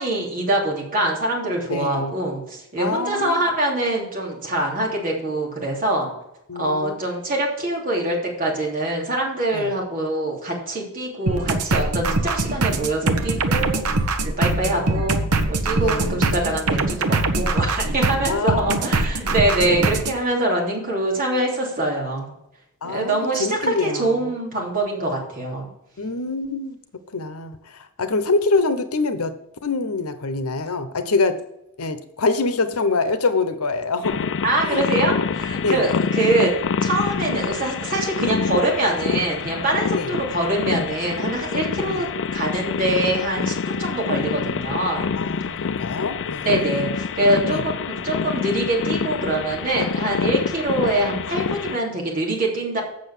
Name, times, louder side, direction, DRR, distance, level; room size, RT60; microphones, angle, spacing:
voice 1, 0.0-6.1 6.6-13.8 14.4-22.3 22.8-25.7 34.4-36.5 36.8-45.1 46.4-52.8, right 1 dB, 40° right, -2 dB, 3.2 m, -24 dB
voice 2, 1.7-2.1 2.8-3.4 6.5-7.0 9.5-9.7 14.6-14.9 15.8-16.4 18.3-19.0 19.6-19.9 22.8-24.3 26.0-26.8 27.1-27.6 28.0-29.3 29.6-31.4 31.8-34.3 34.6-34.9 35.6-35.9 39.9-40.1 41.8-42.0 45.2-46.9 47.4-47.6, left 3 dB, 75° left, 11 dB, 1.0 m, -25 dB
sound 1, 11.3-20.2, right 2 dB, 85° right, 1.0 m, -22 dB
sound 2, 34.0-51.8, left 5 dB, 60° left, 0.5 m, -26 dB
8.0 x 6.4 x 7.3 m, 0.83 s
head